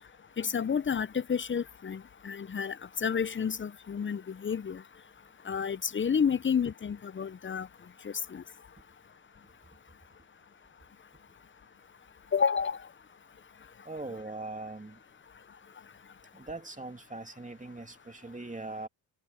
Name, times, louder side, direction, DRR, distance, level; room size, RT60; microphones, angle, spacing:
voice 1, 0.4-4.8 5.5-7.7 8.0-8.4 12.3-12.8, left 7 dB, 25° left, 0.6 m, -30 dB
voice 2, 13.9-15.0 16.3-18.9, right 2 dB, 15° right, 2.7 m, -41 dB
cardioid pair, 70°, 46 cm